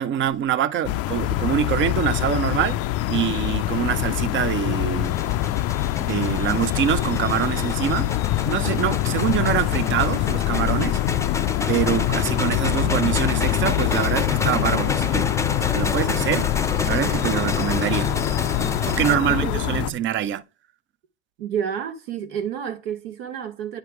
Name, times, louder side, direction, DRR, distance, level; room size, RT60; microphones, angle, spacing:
voice 1, 0.0-2.8 3.1-5.1 6.0-8.1 8.4-11.0 11.7-15.3 15.6-16.5 16.8-18.1 18.9-20.4, right 10 dB, 40° right, 0.7 m, -25 dB
sound 1, 0.8-19.9, left 15 dB, 50° left, 0.5 m, -24 dB
sound 2, 5.0-19.2, left 3 dB, 10° left, 0.6 m, -30 dB
voice 2, 19.1-20.0 21.4-23.8, right 8 dB, 75° right, 1.6 m, -30 dB
9.3 x 3.2 x 4.7 m
hypercardioid pair, 90°, 31 cm